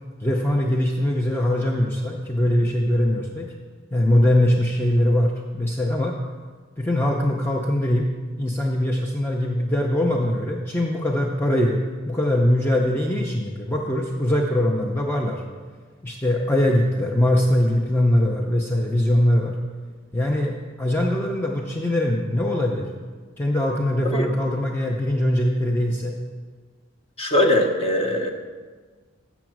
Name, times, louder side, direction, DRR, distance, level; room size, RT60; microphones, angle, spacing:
voice 1, 0.2-3.5 3.9-6.1 6.8-8.1 8.4-11.8 12.1-15.4 16.0-19.5 20.1-22.9 23.4-26.1, left 1 dB, 10° left, 0 dB, 0.5 m, -22 dB
voice 2, 27.2-28.3, left 1 dB, 30° left, 3 dB, 0.9 m, -21 dB
7.3 x 7.0 x 6.0 m, 1.5 s
head